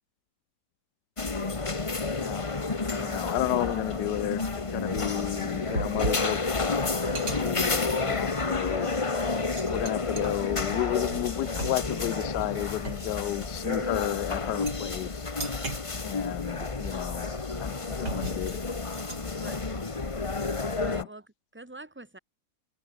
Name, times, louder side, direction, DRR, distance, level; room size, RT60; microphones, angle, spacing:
sound 1, 1.2-21.0, left 3 dB, 20° left, 1.1 m, -30 dB
voice 1, 1.9-2.5 2.9-4.4 4.7-6.8 7.2-8.9 9.7-15.3 16.0-17.3 17.6-18.6 19.3-19.6 20.8-21.1, left 15 dB, 80° left, 1.2 m, -32 dB
sound 2, 3.6-20.7, right 3 dB, 80° right, 5.0 m, -40 dB
voice 2, 8.2-9.0 19.3-19.9 20.8-22.2, right 2 dB, 5° right, 2.3 m, -47 dB
omnidirectional pair, 1.8 m